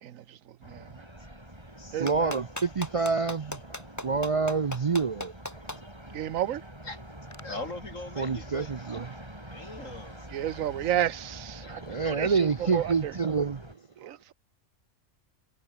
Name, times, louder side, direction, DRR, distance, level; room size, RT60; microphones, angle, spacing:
voice 1, 0.0-1.0 1.9-2.4 6.1-6.6 10.3-13.1 14.0-14.3, right 11 dB, 85° right, 1.2 m, -32 dB
sound 1, 0.6-13.7, right 1 dB, 20° right, 5.5 m, -46 dB
voice 2, 2.0-5.3 5.7-5.8 8.2-9.1 11.8-13.6, right 5 dB, 45° right, 0.4 m, -27 dB
Clapping, 2.1-5.8 7.3-7.4, left 1 dB, 15° left, 1.7 m, -37 dB
voice 3, 7.4-8.7 9.5-10.3 11.6-12.3 12.6-12.8, left 2 dB, 75° left, 4.9 m, -41 dB
omnidirectional pair, 1.3 m